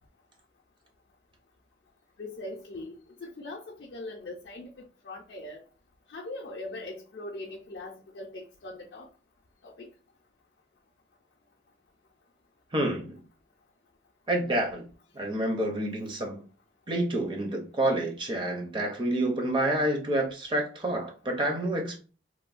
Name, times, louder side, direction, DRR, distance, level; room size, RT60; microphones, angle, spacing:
voice 1, 2.2-5.6 6.1-9.1 9.6-9.9, left 2 dB, 65° left, 0.4 m, -41 dB
voice 2, 12.7-13.2 14.3-14.9 15.1-16.4 16.9-22.0, right 1 dB, 25° right, 0.5 m, -28 dB
3.1 x 2.1 x 2.4 m
head